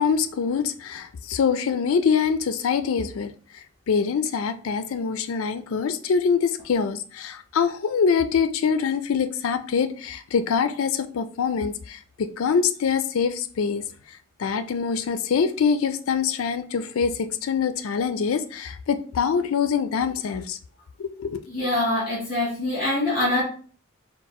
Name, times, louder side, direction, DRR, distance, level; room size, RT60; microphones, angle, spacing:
voice 1, 0.0-13.8 14.4-20.6 21.0-21.4, left 6 dB, 85° left, 0.4 m, -24 dB
voice 2, 21.5-23.4, left 1 dB, 40° left, 2.0 m, -24 dB
4.5 x 2.3 x 4.2 m
head